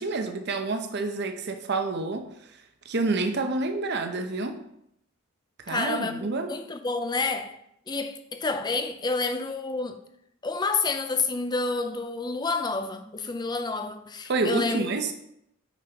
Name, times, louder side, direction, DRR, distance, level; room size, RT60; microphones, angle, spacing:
voice 1, 0.0-2.2 2.9-4.6 5.7-6.5 14.3-15.1, right 3 dB, 50° right, 0.7 m, -28 dB
voice 2, 5.7-7.6 7.9-10.0 10.4-14.9, left 3 dB, 20° left, 0.5 m, -29 dB
8.9 x 5.3 x 2.9 m
head